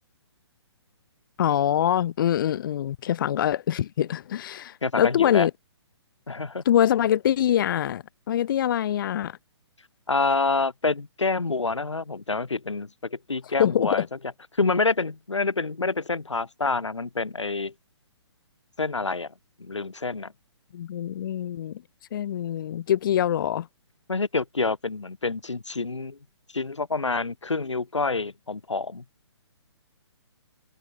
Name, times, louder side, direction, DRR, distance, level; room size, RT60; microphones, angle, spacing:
voice 1, 1.4-5.5 6.6-9.4 13.6-14.0 20.7-21.8 22.1-23.7, left 10 dB, 45° left, 0.8 m, -24 dB
voice 2, 4.8-5.5 6.3-6.6 10.1-14.1 14.6-17.7 18.8-19.3 19.6-20.3 24.1-26.2 26.5-29.0, left 3 dB, 85° left, 2.4 m, -27 dB
figure-of-eight pair, 135°, 15 cm